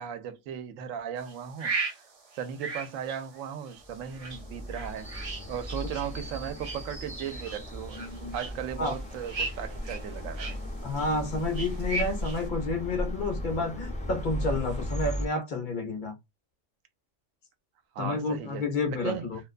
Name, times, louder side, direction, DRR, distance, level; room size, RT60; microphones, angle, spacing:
voice 1, 0.0-1.7 2.4-5.1 5.5-8.0 8.3-10.6 17.9-18.6 18.9-19.3, right 8 dB, 85° right, 1.0 m, -36 dB
sound 1, 1.2-12.5, right 3 dB, 50° right, 0.4 m, -39 dB
sound 2, 3.8-15.3, equal, 5° left, 0.6 m, -36 dB
voice 2, 7.9-8.4 8.8-8.9 10.8-16.1 18.0-19.4, left 3 dB, 45° left, 0.7 m, -30 dB
2.5 x 2.2 x 2.4 m
omnidirectional pair, 1.3 m